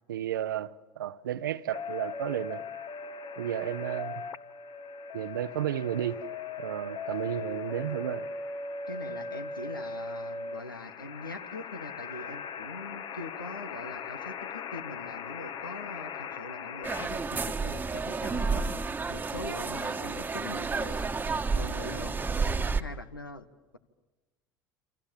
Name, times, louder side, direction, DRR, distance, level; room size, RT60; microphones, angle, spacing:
voice 1, 0.1-2.6 3.4-4.2 5.1-6.2 6.6-8.3, right 11 dB, 70° right, 0.9 m, -33 dB
sound 1, 1.7-17.1, left 4 dB, 45° left, 1.4 m, -39 dB
voice 2, 8.9-21.1 21.5-22.2 22.8-23.5, left 2 dB, 85° left, 1.6 m, -42 dB
sound 2, 16.8-22.8, right 4 dB, 15° right, 1.4 m, -31 dB
28.5 x 27.0 x 7.4 m
figure-of-eight pair, 70°, 11 cm